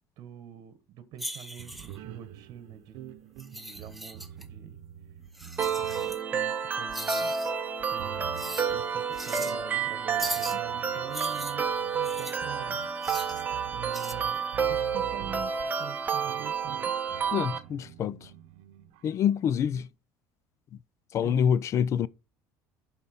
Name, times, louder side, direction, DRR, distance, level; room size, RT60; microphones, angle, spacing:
voice 1, 0.2-3.0 3.5-4.8 5.7-7.3 7.9-8.4 8.7-11.6 11.9-12.8 13.7-14.4 14.6-16.8 21.2-21.5, right 9 dB, 55° right, 1.3 m, -45 dB
sound 1, 1.2-2.0 3.4-4.4 5.3-6.2 6.9-7.5 8.4-8.7 9.1-9.6 10.2-10.6 11.1-12.4 13.0-13.4 13.9-14.1, right 1 dB, ahead, 0.8 m, -38 dB
sound 2, 1.6-6.5 6.9-7.0 7.8-19.9, right 10 dB, 75° right, 0.8 m, -47 dB
sound 3, 5.6-17.6, right 6 dB, 20° right, 1.0 m, -30 dB
voice 2, 17.3-18.2 19.0-19.8 21.1-22.1, left 8 dB, 40° left, 0.4 m, -26 dB
11.0 x 4.1 x 4.3 m
cardioid pair, 140°, 8 cm